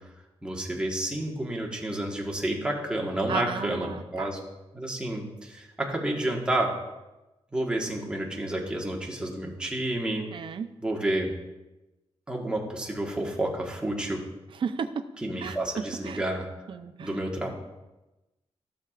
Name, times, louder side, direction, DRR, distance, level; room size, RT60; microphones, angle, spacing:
voice 1, 0.4-4.4 4.7-6.7 7.5-10.3 10.8-11.3 12.3-14.2 15.2-16.5 17.0-17.5, right 1 dB, 10° right, -1 dB, 1.5 m, -30 dB
voice 2, 3.3-4.3 10.3-10.7 14.5-15.0 15.4-15.6 16.0-16.2 16.7-17.1, right 6 dB, 55° right, 9 dB, 0.6 m, -33 dB
15.5 x 6.9 x 2.5 m, 1.0 s
wide cardioid pair, 140°, 10 cm